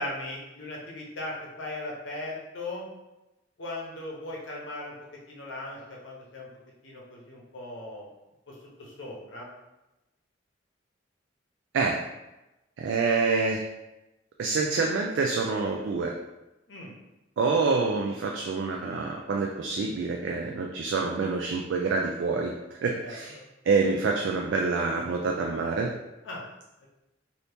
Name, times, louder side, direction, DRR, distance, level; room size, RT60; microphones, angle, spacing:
voice 1, 0.0-2.9 3.6-4.9 5.3-6.5 6.8-8.1 8.5-9.5 16.7-16.9 23.0-23.5 26.2-26.4, left 1 dB, 75° left, -3 dB, 0.9 m, -38 dB
voice 2, 12.8-13.7 14.4-16.1 17.4-23.4 23.7-25.9, right 4 dB, 70° right, 1 dB, 0.3 m, -27 dB
2.8 x 2.7 x 3.4 m, 0.99 s
head